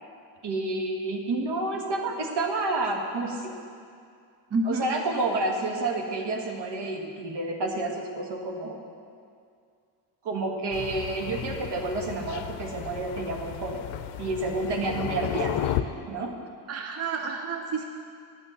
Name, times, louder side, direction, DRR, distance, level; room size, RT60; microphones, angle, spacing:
voice 1, 0.4-3.6 4.6-8.8 10.2-13.8 14.2-15.8 16.1-16.3, right 2 dB, 65° right, 2 dB, 1.6 m, -29 dB
voice 2, 4.5-4.9 16.7-17.9, right 3 dB, 35° right, 3 dB, 0.8 m, -29 dB
Thunder, 10.7-15.8, left 13 dB, 90° left, 0.6 m, -33 dB
9.2 x 5.9 x 7.9 m, 2.3 s
cardioid pair, 75°, 45 cm